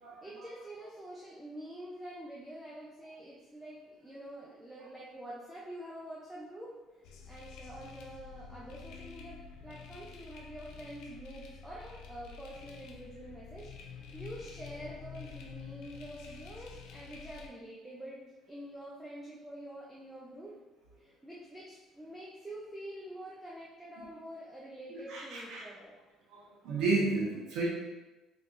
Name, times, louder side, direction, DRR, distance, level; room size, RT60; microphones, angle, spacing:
voice 1, 0.2-6.7 7.3-20.5 21.0-26.0, right 1 dB, 5° right, -6 dB, 0.5 m, -46 dB
sound 1, 7.0-17.5, left 6 dB, 85° left, 0.5 m, -48 dB
voice 2, 24.9-25.6 26.3-27.7, right 3 dB, 75° right, -4 dB, 1.1 m, -32 dB
5.2 x 3.2 x 2.5 m, 1.1 s
cardioid pair, 175°, 0 cm